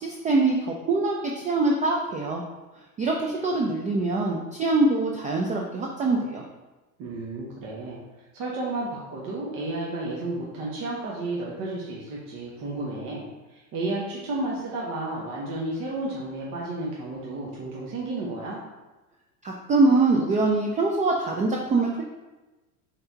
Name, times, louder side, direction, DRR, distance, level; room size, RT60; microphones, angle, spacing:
voice 1, 0.0-2.4 3.0-6.4 19.4-22.0, right 3 dB, 20° right, -1 dB, 0.4 m, -23 dB
voice 2, 7.0-8.0 8.3-18.6, right 2 dB, 45° right, -4 dB, 1.1 m, -32 dB
5.5 x 3.4 x 2.8 m, 1.1 s
hypercardioid pair, 85°, 45 cm